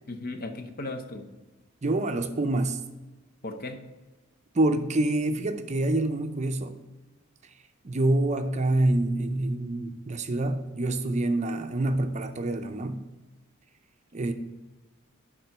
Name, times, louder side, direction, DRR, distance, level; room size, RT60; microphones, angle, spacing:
voice 1, 0.1-1.3 3.4-3.9, left 2 dB, 45° left, 0.8 m, -36 dB
voice 2, 1.8-2.8 4.5-6.8 7.4-7.5 7.8-13.1 14.1-14.3, right 2 dB, 35° right, 0.5 m, -26 dB
10.5 x 3.8 x 5.4 m
head